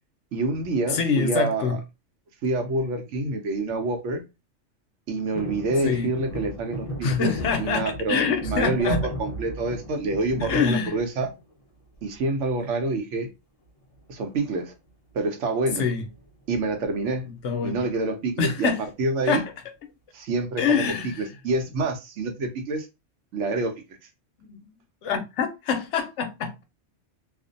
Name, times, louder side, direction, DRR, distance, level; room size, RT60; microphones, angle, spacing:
voice 1, 0.3-1.8 2.4-4.2 5.1-11.3 12.0-13.3 14.1-14.7 15.1-15.9 16.5-17.3 17.6-18.7 19.0-19.4 20.1-22.9 23.3-23.7, right 3 dB, 75° right, 0.9 m, -27 dB
voice 2, 0.9-1.8 5.8-6.1 7.0-9.1 10.4-11.0 15.8-16.0 17.4-17.8 18.4-18.8 19.3-19.5 20.6-21.2 24.4-24.7 25.0-26.6, left 6 dB, 75° left, 0.9 m, -25 dB
sound 1, 5.3-11.5 11.9-12.6 13.8-14.3 14.5-14.6 14.9-15.2 16.0-16.9 17.4-17.5, right 1 dB, 50° left, 0.4 m, -36 dB
2.5 x 2.1 x 2.5 m
omnidirectional pair, 1.3 m